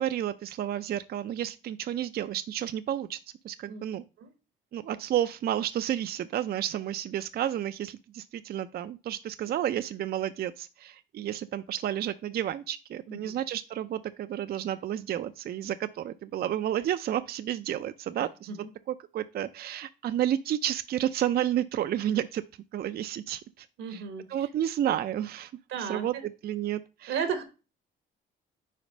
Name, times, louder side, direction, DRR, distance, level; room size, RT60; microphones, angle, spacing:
voice 1, 0.0-3.2 3.4-4.0 4.7-18.5 18.9-22.4 22.7-24.0 24.3-25.5 25.8-27.2, right 11 dB, 50° right, 0.4 m, -31 dB
voice 2, 23.8-24.2 25.7-26.0 27.1-27.4, right 6 dB, 85° right, 1.2 m, -33 dB
5.0 x 4.1 x 5.2 m
cardioid pair, 90°, 20 cm